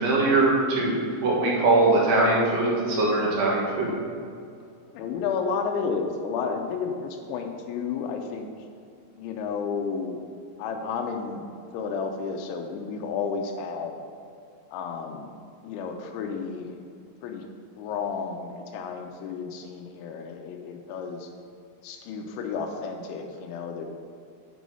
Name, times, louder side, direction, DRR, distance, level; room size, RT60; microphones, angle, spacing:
voice 1, 0.0-3.9, right 2 dB, 70° right, -4 dB, 1.7 m, -22 dB
voice 2, 4.9-8.5 9.2-10.2 10.6-11.4 11.7-14.0 14.7-15.4 15.6-16.8 17.2-17.4 17.8-21.3 21.8-23.9, left 5 dB, 90° left, 4 dB, 3.0 m, -32 dB
6.9 x 6.2 x 5.4 m, 2.3 s
omnidirectional pair, 5.2 m